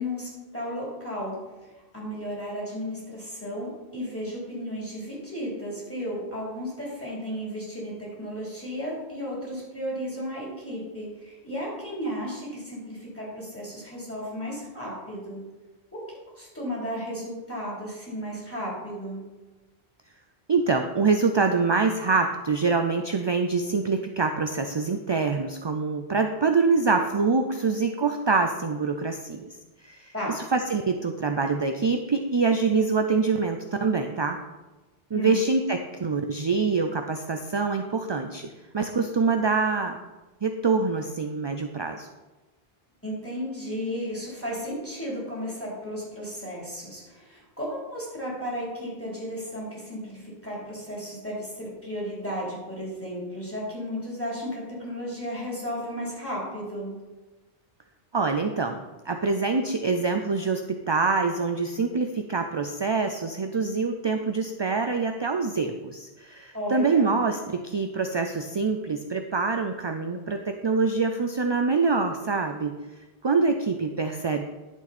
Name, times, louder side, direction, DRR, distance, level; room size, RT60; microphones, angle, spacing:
voice 1, 0.0-1.4 1.9-15.4 15.9-16.0 16.4-19.2 30.1-30.4 35.1-35.4 43.0-56.9 66.5-67.2, equal, 10° left, -6 dB, 3.6 m, -34 dB
voice 2, 20.5-29.4 29.8-34.4 35.1-38.5 38.7-40.0 40.4-42.1 58.1-58.8 59.1-72.7 73.2-74.4, right 4 dB, 35° right, 5 dB, 0.4 m, -25 dB
11.0 x 7.1 x 4.3 m, 1.1 s
omnidirectional pair, 1.1 m